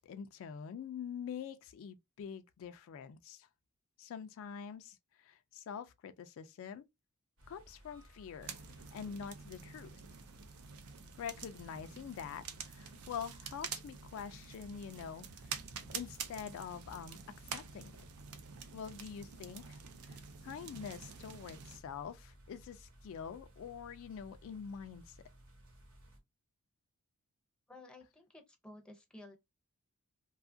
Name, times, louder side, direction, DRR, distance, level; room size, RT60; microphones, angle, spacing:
voice 1, 0.0-3.5 4.0-6.8 7.5-10.0 11.2-15.6 15.9-17.2 17.4-17.9 18.7-19.8 20.1-25.2, left 7 dB, 65° left, 0.3 m, -45 dB
sound 1, 7.4-26.2, right 1 dB, 65° right, 1.0 m, -59 dB
Feuer machen, 8.4-21.8, right 7 dB, 80° right, 0.5 m, -48 dB
voice 2, 27.7-29.4, left 2 dB, 5° left, 0.5 m, -54 dB
2.7 x 2.3 x 2.5 m
head